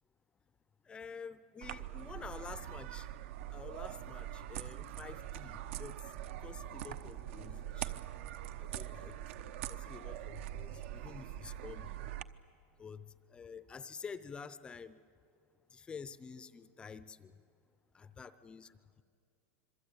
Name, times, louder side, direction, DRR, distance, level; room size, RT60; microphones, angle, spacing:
voice 1, 0.9-3.1 3.5-6.0 6.4-7.9 8.6-9.1 9.7-12.1 12.8-13.1 13.3-15.0 15.7-17.3 17.9-18.7, left 5 dB, 10° left, 14 dB, 0.6 m, -49 dB
sound 1, 1.6-12.2, right 12 dB, 60° right, 0.9 m, -43 dB
26.5 x 23.0 x 8.9 m, 2.5 s
supercardioid pair, 170°, 8 cm